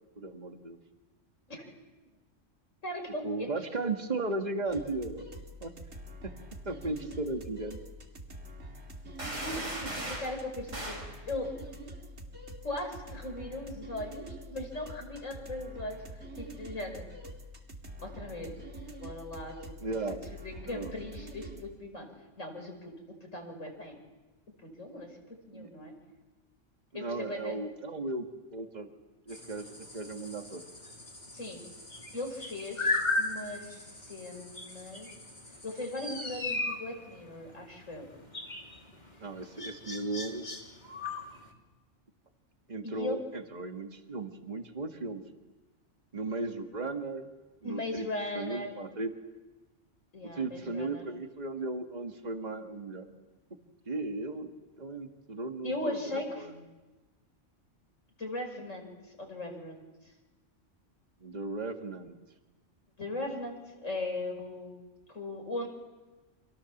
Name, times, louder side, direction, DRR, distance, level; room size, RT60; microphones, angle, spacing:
voice 1, 0.2-0.8 3.2-5.3 5.6-5.7 6.7-7.8 19.8-20.2 20.6-20.9 25.5-25.7 26.9-28.9 29.3-30.6 39.2-40.5 42.7-45.2 46.1-47.3 47.6-48.1 48.3-49.1 50.3-53.1 53.9-54.5 54.8-56.6 61.2-62.1, right 3 dB, 35° right, 5 dB, 2.0 m, -36 dB
voice 2, 2.8-3.5 9.4-11.5 12.6-16.0 16.4-17.0 18.0-18.5 19.0-19.5 20.3-22.1 22.4-22.9 23.3-23.9 24.8-25.2 25.5-25.9 26.9-27.5 31.3-31.6 32.1-35.1 35.6-38.1 42.8-43.2 47.6-48.7 50.1-51.0 55.6-56.5 58.2-59.8 63.0-65.7, left 1 dB, 85° left, 3 dB, 5.9 m, -38 dB
sound 1, 4.7-21.6, right 1 dB, 60° right, 3.0 m, -46 dB
sound 2, 9.2-10.3 10.7-11.1, right 1 dB, 80° right, 5.9 m, -37 dB
sound 3, 29.3-41.5, left 2 dB, 35° left, 3.5 m, -37 dB
30.0 x 27.0 x 7.3 m, 1.2 s
omnidirectional pair, 1.3 m